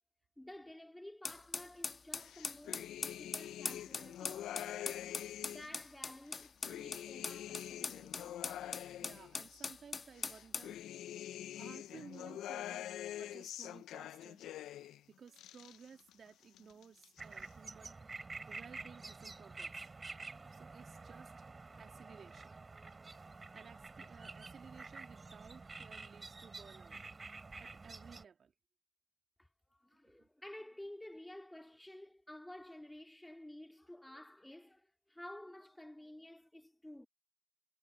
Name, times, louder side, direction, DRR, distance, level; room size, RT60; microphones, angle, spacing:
voice 1, 0.4-5.2 5.5-8.4 29.4-37.1, left 1 dB, 10° left, 2.4 m, -53 dB
sound 1, 1.2-10.7, left 4 dB, 35° left, 1.6 m, -42 dB
sound 2, 2.2-5.8 6.3-9.7 10.2-15.0 15.3-16.1 16.4-17.2, left 12 dB, 70° left, 1.0 m, -45 dB
voice 2, 9.0-11.0 11.6-14.4 15.1-18.0 18.5-19.9 20.5-21.4 21.8-22.5 23.5-27.0 27.6-28.5 30.2-30.3, right 6 dB, 50° right, 2.4 m, -57 dB
sound 3, 17.2-28.2, right 3 dB, 30° right, 4.3 m, -49 dB
supercardioid pair, 60°, 0 cm